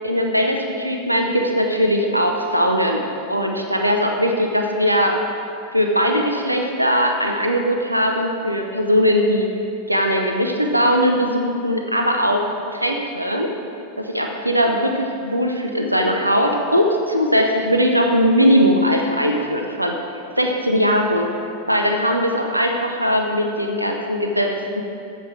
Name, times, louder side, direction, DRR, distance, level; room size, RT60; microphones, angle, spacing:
voice 1, 0.0-5.2 5.7-9.5 9.9-13.5 14.0-19.9 20.4-21.3 21.7-24.5 24.8-24.9, equal, 85° right, 2 dB, 0.8 m, -19 dB
8.5 x 7.6 x 6.0 m, 2.5 s
figure-of-eight pair, 90°, 0 cm